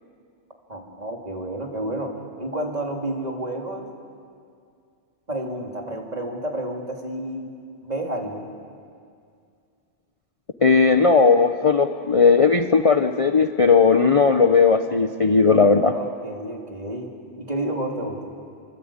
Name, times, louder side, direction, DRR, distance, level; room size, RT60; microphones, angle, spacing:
voice 1, 0.7-3.9 5.3-7.5 7.8-8.4 15.9-17.1 17.4-18.3, right 1 dB, 35° right, 0 dB, 3.5 m, -30 dB
voice 2, 10.6-15.9, left 5 dB, 35° left, 7 dB, 0.8 m, -17 dB
26.5 x 25.0 x 8.9 m, 2.3 s
omnidirectional pair, 1.2 m